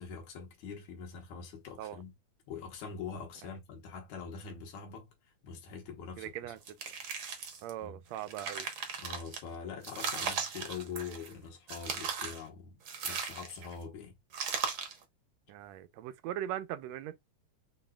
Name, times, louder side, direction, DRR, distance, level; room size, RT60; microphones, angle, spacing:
voice 1, 0.0-2.1 2.5-5.1 5.4-6.6 7.8-8.0 9.0-14.2, left 6 dB, 80° left, 2.5 m, -44 dB
voice 2, 6.2-6.6 7.6-8.7 15.5-17.1, right 12 dB, 80° right, 1.7 m, -39 dB
sound 1, 6.6-7.7 8.1-9.4 9.8-11.3 11.7-12.4 12.9-13.7 14.3-15.0, right 6 dB, 60° right, 1.4 m, -37 dB
6.1 x 3.8 x 2.2 m
omnidirectional pair, 3.4 m